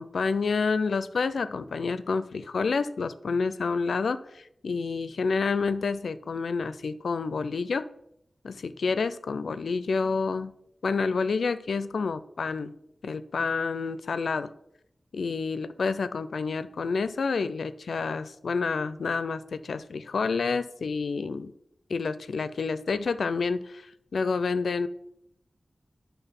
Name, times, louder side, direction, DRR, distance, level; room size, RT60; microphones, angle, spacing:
voice 1, 0.0-7.9 8.4-10.5 10.8-12.7 13.0-14.5 15.1-21.5 21.9-23.9 24.1-24.9, left 4 dB, 90° left, 13 dB, 0.4 m, -29 dB
10.0 x 3.5 x 5.8 m, 0.78 s
wide cardioid pair, 65°, 0 cm